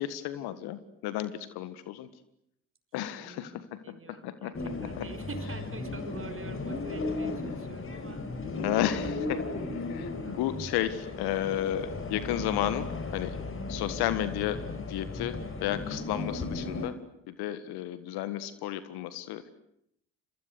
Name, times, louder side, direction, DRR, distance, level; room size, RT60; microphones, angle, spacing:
voice 1, 0.0-2.1 2.9-4.5 4.8-5.1 8.6-9.4 9.9-13.4 13.7-15.4 15.6-17.0 17.3-19.5, left 12 dB, 70° left, 13 dB, 1.8 m, -33 dB
voice 2, 3.2-3.6 3.8-8.2 10.1-10.6, right 4 dB, 35° right, 9 dB, 5.7 m, -46 dB
sound 1, 4.5-16.9, left 3 dB, 35° left, 4.9 m, -36 dB
27.5 x 23.0 x 8.4 m, 0.75 s
hypercardioid pair, 55°, 39 cm